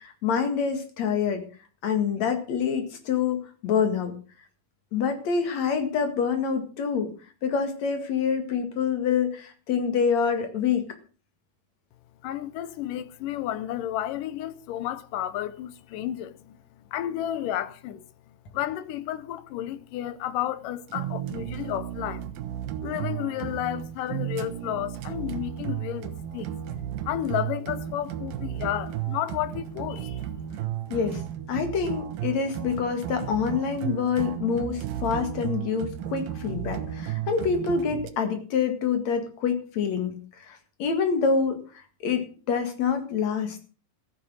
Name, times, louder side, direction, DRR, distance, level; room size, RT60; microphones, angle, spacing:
voice 1, 0.0-1.4 1.8-4.1 4.9-7.1 7.4-10.8 30.9-31.2 31.5-43.6, left 6 dB, 55° left, 3.0 m, -26 dB
voice 2, 12.2-16.6 16.9-18.0 18.5-22.3 22.8-26.5 27.0-30.3, left 12 dB, 75° left, 2.3 m, -32 dB
sound 1, 20.9-38.1, right 11 dB, 85° right, 2.8 m, -34 dB
14.0 x 8.9 x 6.3 m
omnidirectional pair, 4.1 m